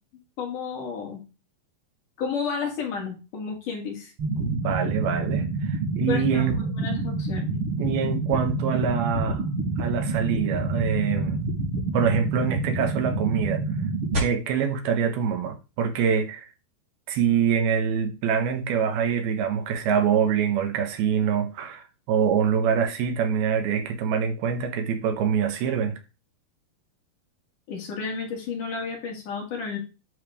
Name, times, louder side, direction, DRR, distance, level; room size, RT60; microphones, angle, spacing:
voice 1, 0.4-1.2 2.2-4.1 6.1-7.6 27.7-29.8, left 5 dB, 55° left, 3.8 m, -32 dB
sound 1, 4.2-14.2, right 3 dB, 35° right, 4.5 m, -28 dB
voice 2, 4.4-6.6 7.8-9.4 9.8-11.4 11.9-13.6 14.2-16.5 17.1-26.0, right 7 dB, 75° right, 3.1 m, -25 dB
11.5 x 5.8 x 3.6 m
omnidirectional pair, 4.5 m